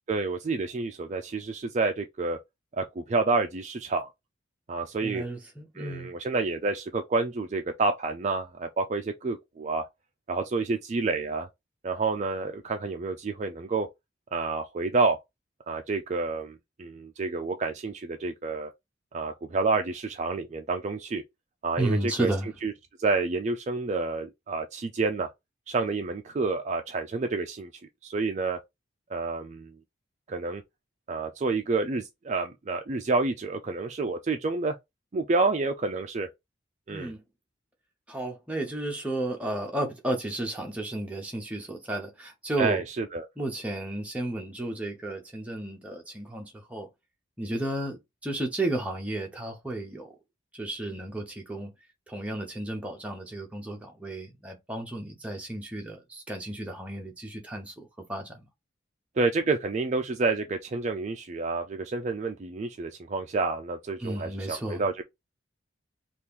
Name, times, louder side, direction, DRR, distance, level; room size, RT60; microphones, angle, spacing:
voice 1, 0.1-2.4 2.8-4.1 4.7-5.2 5.8-9.9 10.3-11.5 11.8-13.9 14.3-15.2 15.7-18.7 19.1-21.2 21.6-22.3 22.6-22.7 23.0-25.3 25.7-27.7 28.0-28.6 29.1-29.7 30.3-30.6 31.1-34.8 35.1-36.3 36.9-37.1 42.6-43.2 59.2-65.0, right 3 dB, 35° right, 0.3 m, -29 dB
voice 2, 5.0-6.1 21.8-22.5 36.9-37.2 38.1-42.8 43.4-46.9 47.4-50.1 50.5-51.7 52.1-58.5 64.0-64.9, right 1 dB, 5° right, 0.7 m, -33 dB
2.9 x 2.4 x 3.5 m
head